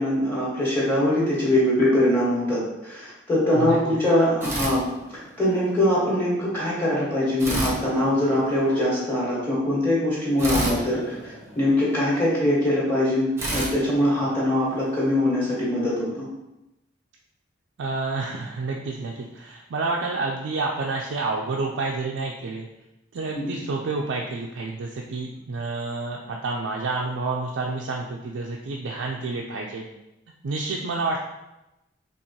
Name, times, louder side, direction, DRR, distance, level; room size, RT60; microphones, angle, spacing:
voice 1, 0.0-4.8 5.4-16.3 23.3-23.4, left 1 dB, 10° left, -7 dB, 1.3 m, -22 dB
sound 1, 4.4-5.5 7.4-8.8 10.4-12.1 13.4-14.9, right 1 dB, 15° right, 0.8 m, -31 dB
voice 2, 17.8-22.7 23.1-29.8 30.4-31.2, right 3 dB, 90° right, -1 dB, 0.4 m, -29 dB
4.5 x 2.9 x 2.8 m, 0.94 s
head